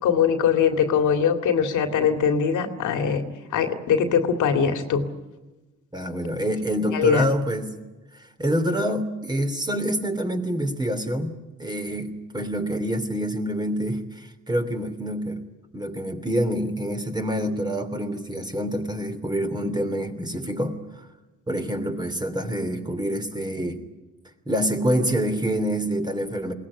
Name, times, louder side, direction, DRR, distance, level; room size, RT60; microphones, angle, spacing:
voice 1, 0.0-3.2 3.5-5.0 6.9-7.3, left 7 dB, 80° left, 6 dB, 2.4 m, -21 dB
voice 2, 5.9-7.7 8.1-15.4 15.7-21.1 21.5-23.8 24.4-26.5, equal, 15° right, 6 dB, 3.1 m, -27 dB
22.0 x 18.5 x 9.9 m, 1.2 s
cardioid pair, 90°, 30 cm